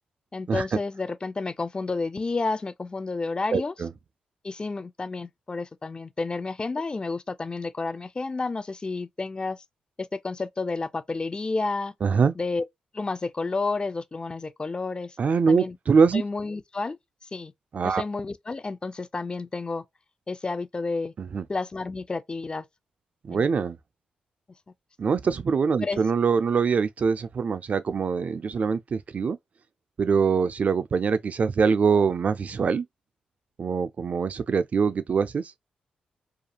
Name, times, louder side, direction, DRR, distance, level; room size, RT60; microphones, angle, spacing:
voice 1, 0.3-3.7 4.4-9.6 10.0-11.9 12.4-12.6 12.9-15.2 15.5-15.8 16.1-17.0 17.3-17.5 17.8-19.8 20.3-21.1 21.5-22.6 23.3-23.5 25.8-26.0, left 3 dB, 30° left, 0.3 m, -30 dB
voice 2, 3.5-3.9 12.0-12.3 15.2-16.2 17.7-18.0 21.2-21.4 23.3-23.8 25.0-29.4 30.0-32.9 33.6-35.4, right 5 dB, 50° right, 0.3 m, -23 dB
2.3 x 2.3 x 2.8 m
supercardioid pair, 50°, 3 cm